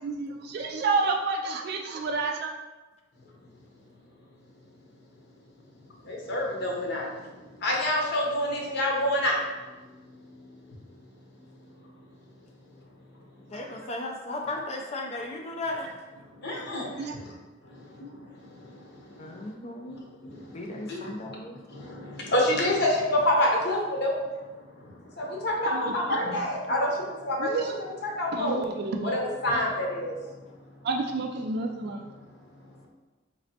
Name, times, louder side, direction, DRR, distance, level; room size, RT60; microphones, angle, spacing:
voice 1, 0.5-2.5 17.0-17.1 25.7-25.9 26.3-26.5 27.4-27.7 28.3-29.2 30.9-32.0, right 4 dB, 55° right, 2 dB, 0.3 m, -29 dB
voice 2, 6.1-7.1 7.6-9.4 16.4-17.3 18.0-18.1 20.2-20.5 20.9-21.4 21.7-24.1 25.2-27.5 28.0-28.6 29.0-30.1, left 1 dB, 60° left, -2 dB, 0.7 m, -27 dB
voice 3, 13.5-15.9 17.0-17.1 19.2-20.0 20.5-21.6, left 2 dB, 35° left, 1 dB, 0.4 m, -35 dB
4.2 x 3.0 x 2.7 m, 1.2 s
head